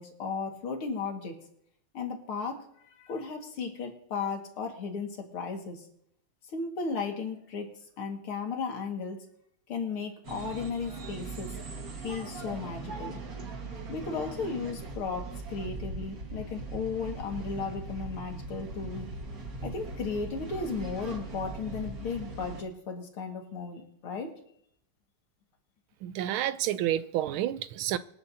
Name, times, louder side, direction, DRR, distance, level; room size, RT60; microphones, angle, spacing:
voice 1, 0.0-1.4 1.9-2.6 3.0-5.8 6.5-7.7 8.0-9.2 9.7-11.5 12.0-13.2 13.9-19.1 19.6-24.3, left 5 dB, 80° left, 2.8 m, -35 dB
sound 1, 10.2-22.6, right 3 dB, 45° right, 2.0 m, -40 dB
voice 2, 26.0-28.0, right 12 dB, 80° right, 1.4 m, -29 dB
26.0 x 9.3 x 2.8 m
omnidirectional pair, 2.3 m